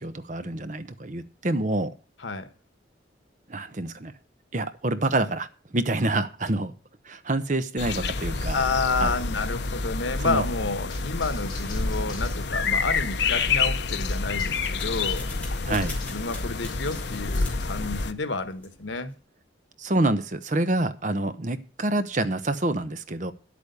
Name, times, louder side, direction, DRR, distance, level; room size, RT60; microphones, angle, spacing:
voice 1, 0.0-1.9 3.5-4.1 4.5-5.5 5.7-6.7 7.0-8.6 9.0-9.1 10.2-10.4 15.6-15.9 19.8-23.3, right 2 dB, 40° right, 0.9 m, -27 dB
sound 1, 7.8-18.1, left 4 dB, 70° left, 0.9 m, -28 dB
voice 2, 8.5-15.3 15.7-19.1, left 3 dB, 90° left, 1.3 m, -30 dB
sound 2, 10.9-16.2 16.6-18.0, left 4 dB, 25° left, 4.6 m, -48 dB
sound 3, 13.9-19.2, left 3 dB, 10° left, 3.3 m, -46 dB
10.5 x 8.4 x 6.9 m
head